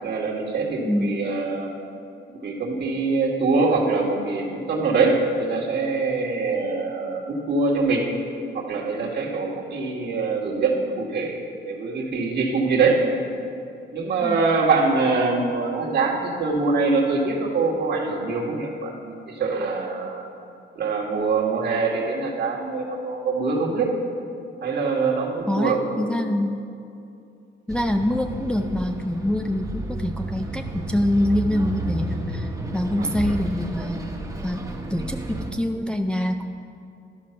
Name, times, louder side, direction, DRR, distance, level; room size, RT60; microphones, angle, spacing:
voice 1, 0.0-1.7 2.3-8.1 8.5-11.4 11.6-13.1 13.9-20.2 20.8-23.9 24.6-26.3 33.0-33.1, right 3 dB, 55° right, -2 dB, 1.8 m, -24 dB
voice 2, 0.8-1.1 14.2-14.4 25.5-26.6 27.7-34.1 34.4-34.6 34.9-36.5, left 1 dB, 5° left, 4 dB, 0.4 m, -25 dB
Bus, 27.7-35.5, right 1 dB, 15° right, 1.1 m, -32 dB
12.5 x 4.7 x 5.7 m, 2.6 s
cardioid pair, 90°, 20 cm